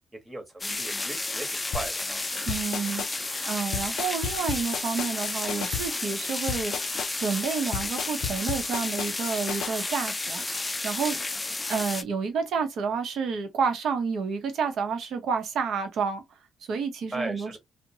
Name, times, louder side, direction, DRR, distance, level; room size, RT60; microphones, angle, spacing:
voice 1, 0.2-2.3 17.1-17.6, right 2 dB, 20° right, 1.0 m, -37 dB
sound 1, 0.6-12.0, left 2 dB, 20° left, 0.4 m, -32 dB
sound 2, 1.7-9.7, left 8 dB, 85° left, 0.4 m, -34 dB
voice 2, 2.5-6.7 7.2-11.2 11.7-16.2 16.7-17.6, right 5 dB, 70° right, 0.8 m, -30 dB
2.7 x 2.1 x 2.7 m
cardioid pair, 90°, 0 cm